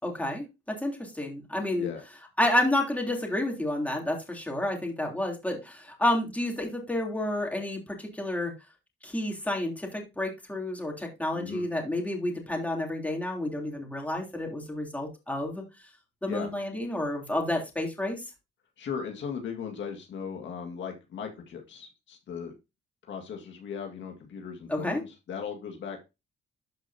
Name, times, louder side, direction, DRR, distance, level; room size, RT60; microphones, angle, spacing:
voice 1, 0.0-1.9 2.4-8.5 9.0-15.6 16.2-18.2 24.7-25.0, left 1 dB, 5° left, 1 dB, 3.2 m, -30 dB
voice 2, 11.3-11.7 16.3-16.5 18.8-22.5 23.0-26.0, left 6 dB, 70° left, 3 dB, 2.0 m, -37 dB
12.5 x 5.1 x 2.8 m, 0.25 s
cardioid pair, 90°, 20 cm